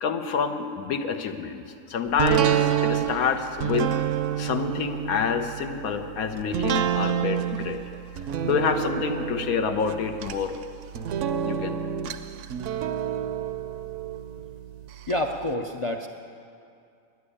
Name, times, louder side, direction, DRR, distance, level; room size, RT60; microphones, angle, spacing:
voice 1, 0.0-3.9 4.4-7.8 8.4-10.5 11.4-11.8, left 6 dB, 90° left, 5 dB, 1.2 m, -27 dB
sound 1, 2.2-15.1 15.5-15.6, right 9 dB, 65° right, 0.9 m, -28 dB
voice 2, 15.1-16.1, left 1 dB, 50° left, 4 dB, 0.4 m, -28 dB
11.0 x 9.6 x 9.9 m, 2.4 s
omnidirectional pair, 1.5 m